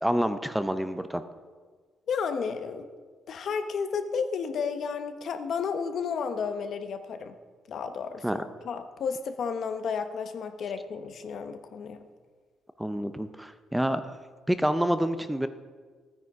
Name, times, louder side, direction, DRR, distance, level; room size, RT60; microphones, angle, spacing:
voice 1, 0.0-1.2 8.2-8.4 12.8-14.0 14.5-15.5, right 1 dB, 5° right, 10 dB, 0.6 m, -27 dB
voice 2, 2.1-2.9 3.3-7.4 7.7-12.1, left 6 dB, 65° left, 8 dB, 0.9 m, -32 dB
12.5 x 9.5 x 4.8 m, 1.5 s
cardioid pair, 90°, 0 cm